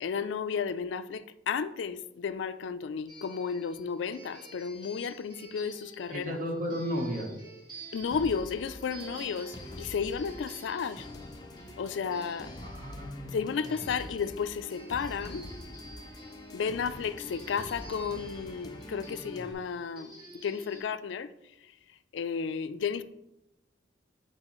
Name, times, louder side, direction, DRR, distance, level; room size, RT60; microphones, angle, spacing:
voice 1, 0.0-6.2 7.9-11.1 11.8-12.5 13.3-15.5 16.5-21.3 21.6-21.7 22.1-23.0, left 6 dB, 85° left, 0.4 m, -33 dB
sound 1, 3.1-20.8, right 1 dB, 25° right, 1.8 m, -50 dB
voice 2, 6.1-7.3 12.6-13.4, equal, 45° right, 1.0 m, -34 dB
sound 2, 8.1-19.5, left 1 dB, 20° left, 0.5 m, -45 dB
8.7 x 4.1 x 3.0 m
head